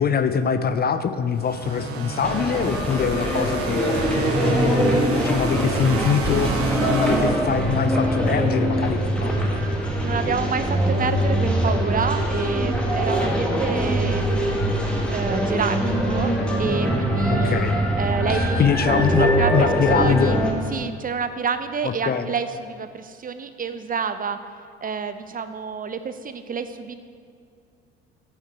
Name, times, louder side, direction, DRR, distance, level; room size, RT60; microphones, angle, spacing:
voice 1, 0.0-6.5 6.8-9.6 17.3-17.8 18.3-20.4 21.8-22.3, left 6 dB, 30° left, 11 dB, 0.5 m, -24 dB
sound 1, 1.4-8.1, right 3 dB, 45° right, 1.0 m, -29 dB
sound 2, 2.2-20.5, equal, 5° left, 1.7 m, -23 dB
voice 2, 10.0-14.6 15.1-16.3 16.6-17.6 18.0-19.1 19.4-20.4 20.7-24.4 24.8-26.9, right 6 dB, 25° right, 10 dB, 0.5 m, -28 dB
9.4 x 6.3 x 4.6 m, 2.3 s
hypercardioid pair, 55°, 32 cm